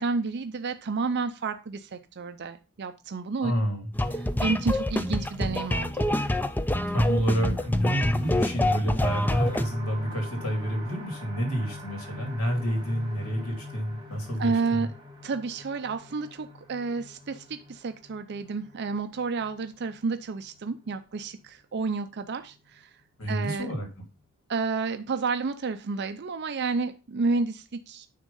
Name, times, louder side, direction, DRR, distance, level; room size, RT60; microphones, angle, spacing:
voice 1, 0.0-3.5 4.1-6.1 14.4-14.9 15.2-22.8 23.3-23.7 24.5-28.1, right 4 dB, 50° right, 9 dB, 0.5 m, -30 dB
voice 2, 3.4-3.9 6.9-14.9 23.2-23.9, equal, 75° left, 2 dB, 2.7 m, -28 dB
sound 1, 4.0-9.6, left 1 dB, 10° left, 0.4 m, -27 dB
sound 2, 9.2-22.7 23.2-23.3 23.7-23.8, left 1 dB, 20° right, 1.7 m, -45 dB
9.4 x 3.6 x 5.3 m, 0.31 s
head